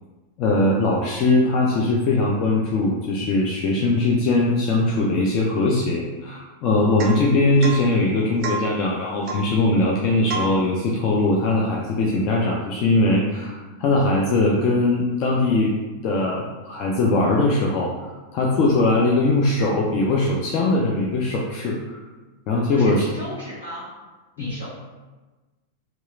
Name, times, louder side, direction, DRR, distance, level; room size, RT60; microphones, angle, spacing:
voice 1, 0.4-15.7 16.0-22.0 22.5-23.0 24.4-24.5, left 2 dB, 40° left, -3 dB, 0.3 m, -21 dB
Domestic sounds home sounds / Chink clink / Drip, 7.0-7.3 7.6-7.9 8.4-8.7 9.3-9.5 10.3-10.6, right 4 dB, 40° right, 0.4 m, -29 dB
voice 2, 22.7-23.9 24.4-24.7, left 1 dB, 75° left, -8 dB, 1.2 m, -35 dB
2.8 x 2.3 x 2.5 m, 1.2 s
figure-of-eight pair, 90°, 0 cm